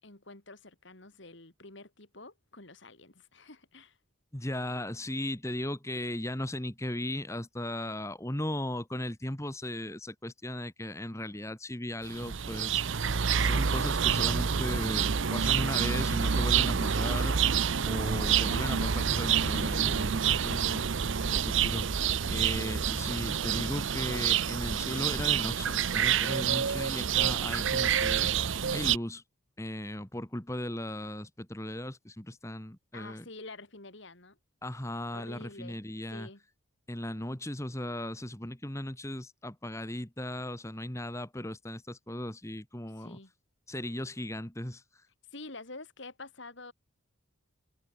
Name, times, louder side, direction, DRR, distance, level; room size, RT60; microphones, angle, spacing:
voice 1, 0.0-4.0 32.9-34.4 35.1-35.8 36.1-36.4 43.0-43.3 45.3-46.7, left 2 dB, 60° left, 2.7 m, -48 dB
voice 2, 4.3-13.0 13.4-17.4 17.9-20.8 21.3-21.9 22.3-28.3 28.7-29.2 29.6-33.3 34.6-36.3 36.9-43.2 43.7-44.8, left 1 dB, 15° left, 1.7 m, -37 dB
sound 1, 12.0-29.0, right 7 dB, 65° right, 0.7 m, -28 dB
head